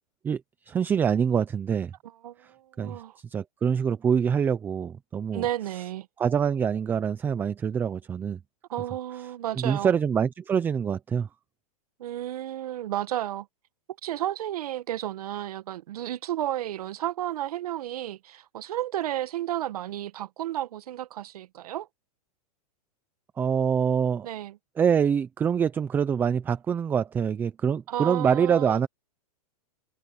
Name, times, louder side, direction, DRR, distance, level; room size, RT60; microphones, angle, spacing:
voice 1, 0.7-1.9 2.8-5.4 6.2-8.4 9.5-11.3 23.4-24.3 24.8-28.9, right 7 dB, 10° right, 0.4 m, -25 dB
voice 2, 2.0-3.2 5.3-6.1 8.7-9.9 12.0-13.5 14.0-21.9 24.2-24.6 27.9-28.8, right 13 dB, 70° right, 1.2 m, -32 dB
supercardioid pair, 155°, 20 cm